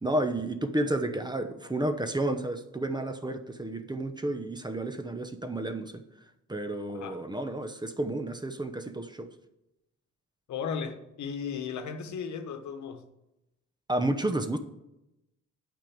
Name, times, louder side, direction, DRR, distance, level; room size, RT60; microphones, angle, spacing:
voice 1, 0.0-6.0 6.5-9.3 13.9-14.6, right 1 dB, 15° right, 0.8 m, -31 dB
voice 2, 10.5-13.1, left 6 dB, 70° left, 1.1 m, -35 dB
8.9 x 5.4 x 7.2 m
cardioid pair, 85°, 30 cm